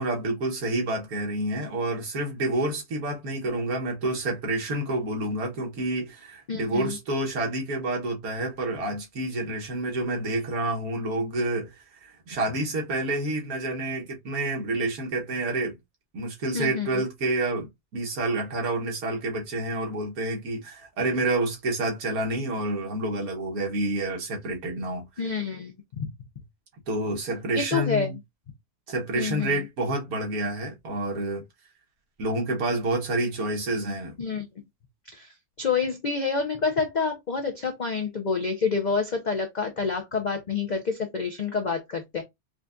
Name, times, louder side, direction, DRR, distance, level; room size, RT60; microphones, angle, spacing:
voice 1, 0.0-11.7 12.0-15.8 16.1-25.1 26.9-28.1 28.9-31.4 32.2-34.1, right 2 dB, 70° right, 1.6 m, -28 dB
voice 2, 6.5-7.0 16.5-16.9 25.2-26.1 27.5-28.2 29.1-29.6 34.2-34.5 35.1-35.3 35.6-42.2, left 5 dB, 70° left, 0.4 m, -28 dB
4.8 x 2.3 x 2.4 m
omnidirectional pair, 1.6 m